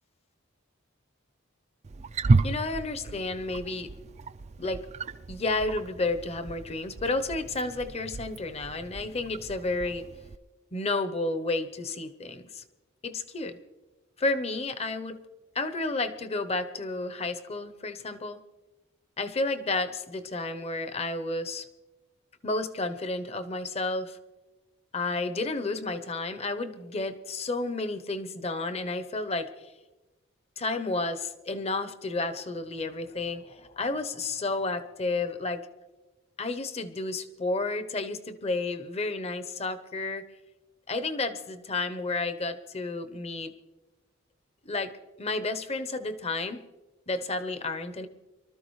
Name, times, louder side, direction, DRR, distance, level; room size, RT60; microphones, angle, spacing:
Wild animals, 1.8-10.4, right 3 dB, 35° right, 0.4 m, -32 dB
voice 1, 2.4-3.9 4.6-4.8 5.3-10.0 10.7-12.6 13.0-13.6 14.2-15.2 15.5-18.4 19.2-21.6 22.4-24.2 24.9-29.5 30.6-35.6 36.4-40.2 40.9-43.5 44.6-44.9 45.2-46.6 47.1-48.1, left 2 dB, 30° left, 10 dB, 0.8 m, -31 dB
24.5 x 13.0 x 3.2 m, 1.1 s
head